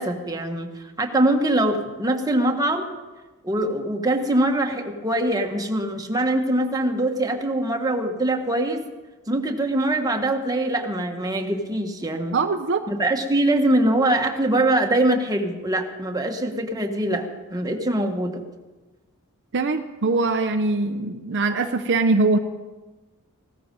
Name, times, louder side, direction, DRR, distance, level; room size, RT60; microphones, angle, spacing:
voice 1, 0.0-2.9 3.4-8.8 9.3-12.3 12.9-18.4, right 1 dB, 15° right, 3 dB, 1.4 m, -23 dB
voice 2, 12.3-12.8 19.5-22.4, right 3 dB, 55° right, 7 dB, 0.7 m, -22 dB
16.0 x 13.5 x 5.3 m, 1.2 s
head